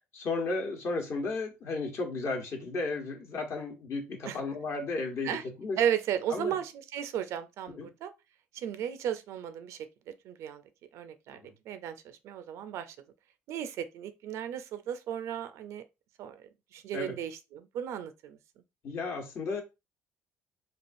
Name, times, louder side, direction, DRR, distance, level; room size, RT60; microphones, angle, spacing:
voice 1, 0.1-5.8 6.3-6.6 7.7-7.9 16.9-17.1 18.8-19.6, left 3 dB, 55° left, 1.1 m, -34 dB
voice 2, 5.8-8.1 8.5-9.8 10.2-10.6 10.9-11.4 11.7-13.0 13.5-15.8 16.2-18.4, right 9 dB, 75° right, 0.4 m, -35 dB
3.3 x 2.3 x 2.6 m
supercardioid pair, 80°, 5 cm